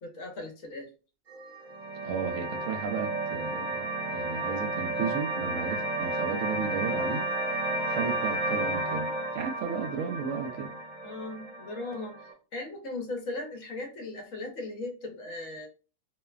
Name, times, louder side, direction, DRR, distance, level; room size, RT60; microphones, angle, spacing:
voice 1, 0.0-0.9 11.0-15.7, left 2 dB, 60° left, 1.1 m, -38 dB
sound 1, 1.3-12.3, right 2 dB, 40° right, 1.0 m, -32 dB
voice 2, 2.0-3.8 4.1-7.2 7.9-10.7, right 6 dB, 65° right, 0.8 m, -34 dB
3.0 x 2.1 x 2.3 m
omnidirectional pair, 1.6 m